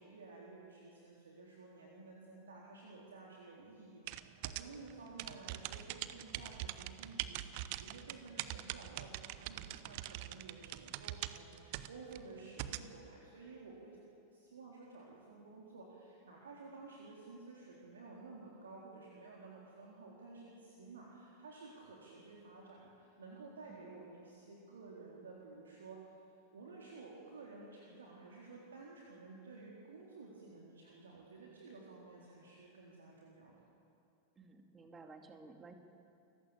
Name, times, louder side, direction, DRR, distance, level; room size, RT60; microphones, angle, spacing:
voice 1, 0.0-14.0 14.3-26.1 26.5-33.6, right 3 dB, 70° right, -3 dB, 3.8 m, -53 dB
sound 1, 4.1-12.9, right 15 dB, 45° right, 0.9 m, -43 dB
voice 2, 34.4-35.7, right 3 dB, 20° right, 5 dB, 2.7 m, -54 dB
29.0 x 15.5 x 8.8 m, 2.6 s
figure-of-eight pair, 90°, 0 cm